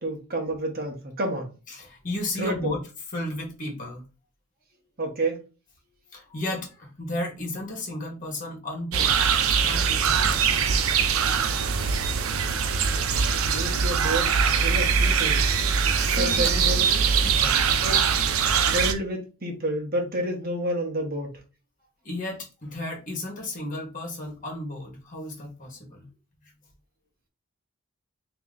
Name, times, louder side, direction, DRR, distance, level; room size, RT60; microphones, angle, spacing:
voice 1, 0.0-1.5 2.4-2.8 5.0-5.4 13.4-15.4 16.1-17.0 17.8-18.0 18.5-21.4, right 1 dB, 45° right, 1.0 m, -30 dB
voice 2, 1.7-2.8 3.1-4.0 6.1-9.2 9.6-10.7 16.0-16.6 17.2-17.7 22.0-26.1, left 1 dB, 40° left, 1.5 m, -34 dB
sound 1, 8.9-18.9, right 6 dB, 85° right, 0.5 m, -22 dB
3.1 x 2.9 x 3.7 m
head